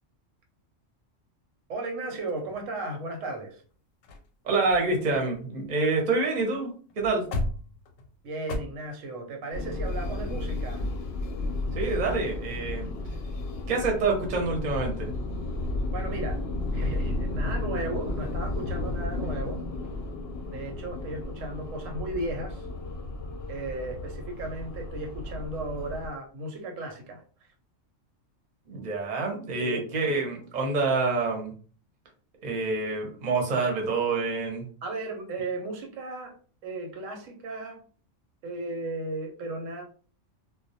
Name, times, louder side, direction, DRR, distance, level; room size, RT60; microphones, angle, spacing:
voice 1, 1.7-3.6 8.2-10.9 15.9-16.4 16.7-19.6 20.5-22.7 23.5-27.2 29.6-29.8 34.8-36.3 36.6-37.8 38.4-39.8, right 2 dB, 90° right, 3 dB, 1.0 m, -35 dB
sound 1, 2.3-3.1 3.7-3.8 4.0-4.3 4.6-6.2 6.4-6.6 6.9-8.6, left 2 dB, 90° left, 1.0 m, -36 dB
voice 2, 4.4-7.2 11.7-12.9 13.7-15.1 28.7-31.5 32.4-34.6, right 3 dB, 45° right, 2 dB, 0.6 m, -27 dB
sound 2, 9.5-26.1, left 2 dB, 65° left, 0.7 m, -33 dB
2.2 x 2.1 x 2.6 m, 0.41 s
omnidirectional pair, 1.3 m